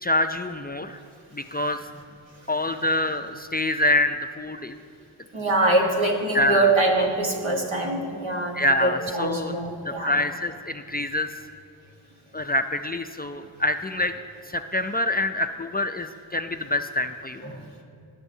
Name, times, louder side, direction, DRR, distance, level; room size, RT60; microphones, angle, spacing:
voice 1, 0.0-1.0 1.3-1.8 2.5-4.8 6.3-6.7 8.5-9.5 9.9-11.3 12.3-14.1 14.5-17.4, left 1 dB, 25° left, 8 dB, 0.3 m, -26 dB
voice 2, 1.5-2.0 5.3-10.1 17.4-17.6, right 2 dB, 85° right, -1 dB, 1.6 m, -24 dB
18.0 x 7.0 x 2.7 m, 2.4 s
cardioid pair, 40°, 46 cm